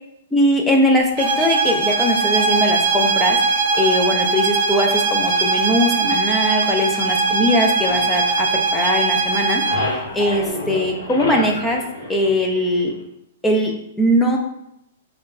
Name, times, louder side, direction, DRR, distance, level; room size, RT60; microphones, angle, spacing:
voice 1, 0.3-3.4 3.7-11.8 12.1-12.9 13.4-14.4, left 1 dB, 5° left, 1 dB, 0.4 m, -20 dB
sound 1, 1.2-9.9, right 4 dB, 55° right, 0.7 m, -20 dB
sound 2, 7.9-9.0 9.3-13.0, left 1 dB, 80° left, 0.9 m, -30 dB
3.8 x 2.3 x 2.3 m, 0.79 s
hypercardioid pair, 160°, 0 cm